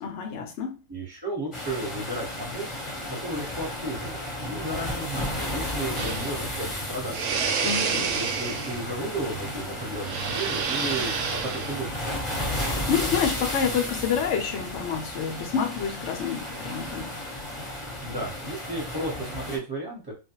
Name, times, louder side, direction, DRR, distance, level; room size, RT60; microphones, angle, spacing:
voice 1, 0.0-0.8 7.6-8.1 12.6-17.1, left 7 dB, 65° left, 0.8 m, -28 dB
voice 2, 0.9-2.7 3.1-7.2 8.1-11.1 11.4-12.0 18.0-20.1, right 1 dB, 20° right, 0.9 m, -34 dB
sound 1, 1.5-19.6, left 1 dB, 25° left, 0.7 m, -33 dB
sound 2, 6.0-12.7, right 5 dB, 70° right, 0.9 m, -31 dB
2.4 x 2.2 x 2.8 m
omnidirectional pair, 1.5 m